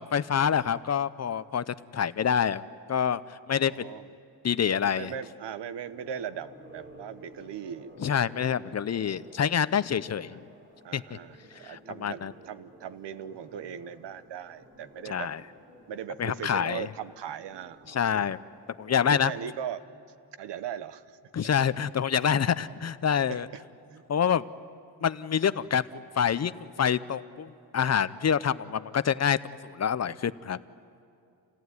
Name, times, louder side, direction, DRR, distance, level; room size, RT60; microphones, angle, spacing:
voice 1, 0.0-2.6 2.9-3.9 4.4-5.1 8.0-10.4 10.9-11.0 11.6-12.3 15.1-15.4 16.2-16.9 17.9-18.4 18.8-19.3 21.3-23.5 24.1-24.4 25.0-29.4 29.6-30.6, left 8 dB, 40° left, 15 dB, 0.6 m, -27 dB
voice 2, 3.6-4.1 4.9-7.9 10.8-15.3 15.9-18.3 19.0-19.8 20.4-21.5 23.3-23.6 23.9-24.0, right 8 dB, 80° right, 15 dB, 0.9 m, -39 dB
sound 1, 5.9-19.3, right 1 dB, 25° right, 3.5 m, -53 dB
28.0 x 17.0 x 9.5 m, 2.5 s
wide cardioid pair, 120°, 41 cm